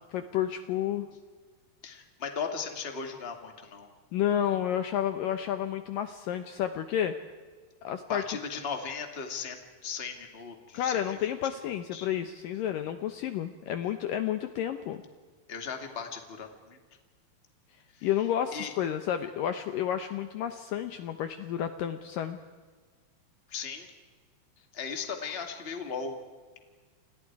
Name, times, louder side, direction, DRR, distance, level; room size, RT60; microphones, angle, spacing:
voice 1, 0.1-1.1 4.1-7.2 7.8-8.2 10.7-15.0 18.0-22.4, left 10 dB, 70° left, 8 dB, 2.3 m, -31 dB
voice 2, 1.8-3.9 8.1-9.6 9.8-11.2 11.7-12.1 15.5-16.8 17.9-18.1 18.5-18.7 23.5-23.9 24.7-26.2, left 6 dB, 20° left, 4 dB, 1.9 m, -37 dB
30.0 x 28.5 x 4.8 m, 1.5 s
omnidirectional pair, 4.6 m